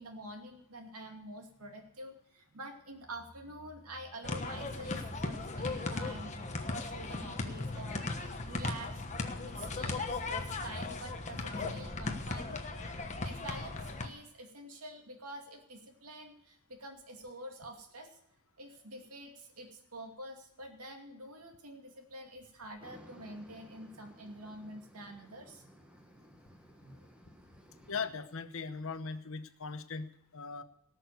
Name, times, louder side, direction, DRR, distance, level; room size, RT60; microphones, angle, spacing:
voice 1, 0.0-9.0 9.4-12.6 13.2-18.2 18.6-25.6 26.8-27.1, right 1 dB, 80° right, 3 dB, 2.5 m, -47 dB
sound 1, 4.2-14.1, left 3 dB, 30° left, 1.3 m, -37 dB
sound 2, 22.8-28.1, equal, 5° right, 1.3 m, -57 dB
voice 2, 27.9-30.6, left 5 dB, 65° left, 11 dB, 0.9 m, -39 dB
18.5 x 6.5 x 8.2 m, 0.74 s
head